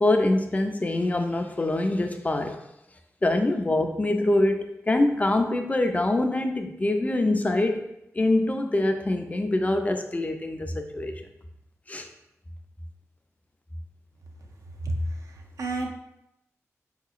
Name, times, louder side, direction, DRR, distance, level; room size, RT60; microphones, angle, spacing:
voice 1, 0.0-2.6 3.2-7.9 8.1-11.2 11.9-12.1, left 2 dB, 25° left, 5 dB, 0.4 m, -24 dB
voice 2, 14.8-15.9, right 1 dB, 75° right, 1 dB, 0.5 m, -30 dB
3.8 x 2.9 x 2.4 m, 0.84 s
cardioid pair, 60°, 6 cm